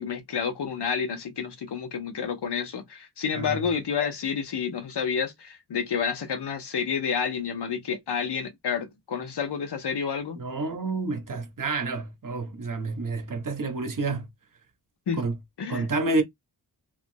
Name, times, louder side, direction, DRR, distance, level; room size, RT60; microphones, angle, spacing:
voice 1, 0.0-10.4 15.1-15.2 15.6-15.9, left 6 dB, 85° left, 0.8 m, -29 dB
voice 2, 3.3-3.7 10.3-14.3 15.2-15.3 15.7-16.2, right 3 dB, 55° right, 0.8 m, -29 dB
2.9 x 2.3 x 2.6 m
wide cardioid pair, 85°, 40 cm